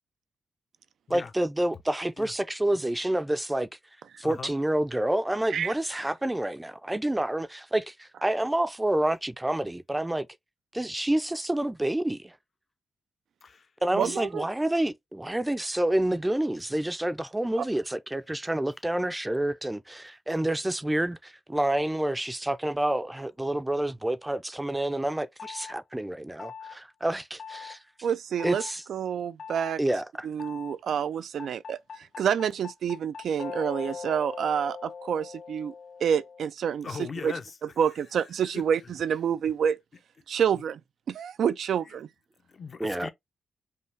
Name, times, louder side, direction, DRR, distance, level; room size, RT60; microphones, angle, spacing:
voice 1, 1.1-3.7 4.2-10.3 10.7-12.4 13.8-27.8 28.4-28.8 29.8-30.3 42.8-43.1, right 1 dB, 10° right, 0.5 m, -28 dB
voice 2, 4.2-4.5 13.4-13.7 14.0-14.2 36.8-37.6 38.3-38.6 40.5-40.6 42.5-43.1, left 5 dB, 50° left, 0.7 m, -39 dB
voice 3, 13.9-14.4 17.6-17.7 28.0-28.6 28.9-29.8 30.2-35.7 36.0-37.3 37.8-39.8 40.3-40.8 41.1-42.1, right 8 dB, 80° right, 0.3 m, -28 dB
sound 1, 25.4-25.7 26.4-26.8 27.4-27.8 28.4-28.7 29.4-29.7 30.4-30.8 31.4-36.5, left 6 dB, 80° left, 0.8 m, -40 dB
5.5 x 2.3 x 3.3 m
cardioid pair, 85°, 0 cm